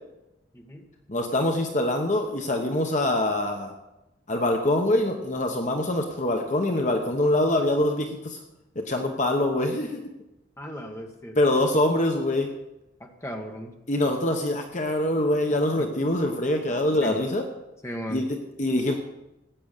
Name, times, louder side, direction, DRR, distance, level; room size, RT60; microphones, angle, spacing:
voice 1, 1.1-3.8 4.3-8.4 8.7-10.0 11.4-12.5 13.9-17.5 18.1-18.9, left 1 dB, 40° left, 4 dB, 1.2 m, -24 dB
voice 2, 10.6-11.3 13.2-13.7 15.8-15.9 17.0-17.2 17.8-18.2, equal, 15° left, 2 dB, 1.7 m, -36 dB
16.0 x 9.5 x 6.7 m, 0.96 s
head